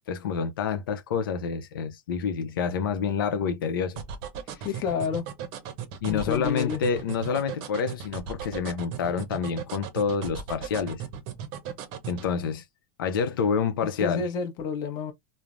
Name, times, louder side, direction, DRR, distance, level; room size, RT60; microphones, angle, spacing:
voice 1, 0.1-4.0 6.0-11.0 12.1-12.6 13.0-14.2, left 6 dB, 90° left, 0.6 m, -28 dB
sound 1, 4.0-12.3, right 8 dB, 45° right, 0.6 m, -36 dB
voice 2, 4.6-5.2 6.1-6.8 13.8-15.1, left 6 dB, 40° left, 0.7 m, -29 dB
3.2 x 2.0 x 2.4 m
supercardioid pair, 140°, 11 cm